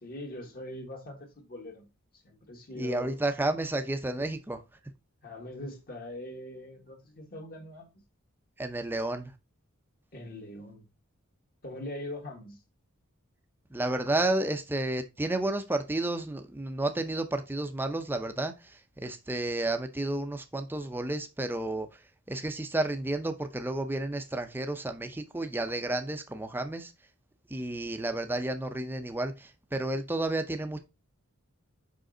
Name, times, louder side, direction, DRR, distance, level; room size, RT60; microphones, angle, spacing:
voice 1, 0.0-1.9 2.2-3.2 5.2-7.9 10.1-10.9 11.6-12.6, left 1 dB, 45° left, 1.7 m, -42 dB
voice 2, 2.8-4.6 8.6-9.3 13.7-21.9 22.3-26.9 27.5-30.8, right 2 dB, 10° right, 0.5 m, -31 dB
5.1 x 5.1 x 3.8 m
head